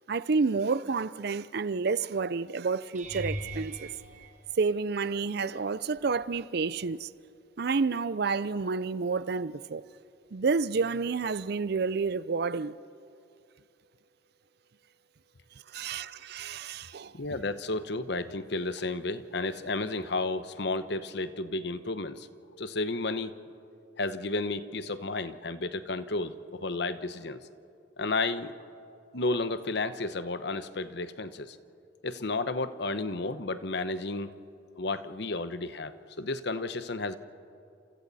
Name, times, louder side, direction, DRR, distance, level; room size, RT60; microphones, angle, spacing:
voice 1, 0.1-3.9 4.6-7.1 7.6-9.8 10.3-12.8 15.7-17.2, right 4 dB, 60° right, 0.5 m, -29 dB
sound 1, 2.9-5.2 5.9-6.4 6.7-6.9 11.2-11.3, right 1 dB, 40° right, 1.7 m, -40 dB
voice 2, 17.1-22.3 22.6-23.4 24.0-27.4 28.0-28.6 29.1-31.6 32.0-34.3 34.8-37.2, left 3 dB, 65° left, 1.0 m, -32 dB
29.5 x 28.0 x 4.2 m
head